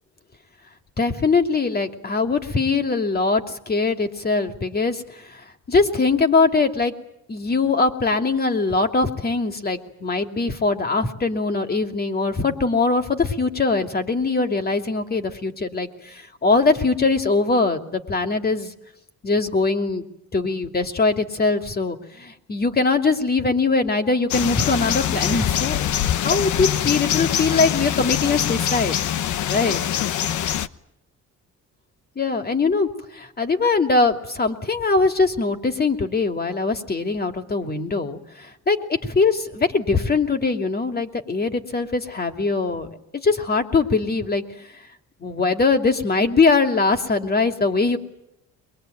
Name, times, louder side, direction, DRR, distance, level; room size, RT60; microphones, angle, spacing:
voice 1, 1.0-6.9 7.3-18.7 19.2-20.0 20.3-29.0 29.5-29.8 32.2-42.9 43.2-44.8 45.2-48.0, left 3 dB, 30° left, 6 dB, 2.7 m, -22 dB
sound 1, 24.3-30.7, left 10 dB, 75° left, 1.0 m, -23 dB
23.0 x 22.5 x 9.3 m, 0.81 s
cardioid pair, 90°, 30 cm